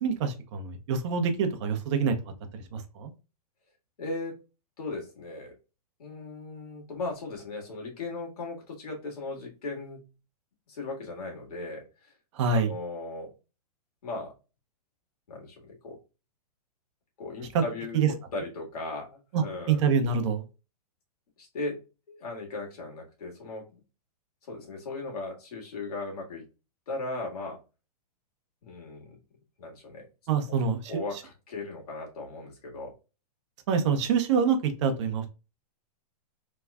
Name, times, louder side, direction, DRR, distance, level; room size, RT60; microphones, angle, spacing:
voice 1, 0.0-2.2 2.5-3.1 12.3-12.7 17.9-18.1 19.3-20.4 30.3-30.9 33.7-35.3, right 6 dB, 45° right, 6 dB, 0.8 m, -26 dB
voice 2, 4.0-4.4 4.8-5.5 6.0-10.1 10.7-12.1 12.5-13.3 14.0-14.3 15.3-16.0 17.2-19.8 21.4-21.8 22.1-23.8 24.4-26.5 26.9-27.6 28.6-29.2 29.6-30.1 30.5-30.6 30.9-32.9, left 2 dB, 70° left, 0 dB, 1.9 m, -37 dB
3.5 x 3.1 x 2.3 m, 0.30 s
hypercardioid pair, 155°, 20 cm